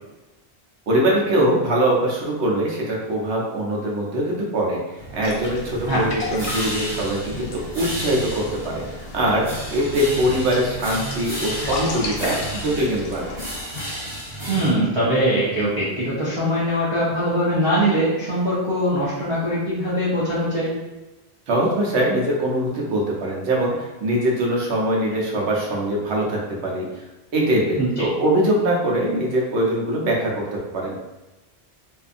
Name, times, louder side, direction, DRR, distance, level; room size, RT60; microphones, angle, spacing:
voice 1, 0.9-4.8 5.1-13.3 21.5-27.0 27.3-31.0, right 1 dB, 80° right, -3 dB, 1.0 m, -22 dB
sound 1, 4.9-14.7, equal, 50° right, 1.4 m, -33 dB
sound 2, 5.2-13.6, left 2 dB, 75° left, 0.9 m, -35 dB
voice 2, 14.5-20.7 27.7-28.1, equal, 30° right, -10 dB, 0.6 m, -22 dB
2.6 x 2.4 x 2.5 m, 1.1 s
omnidirectional pair, 1.1 m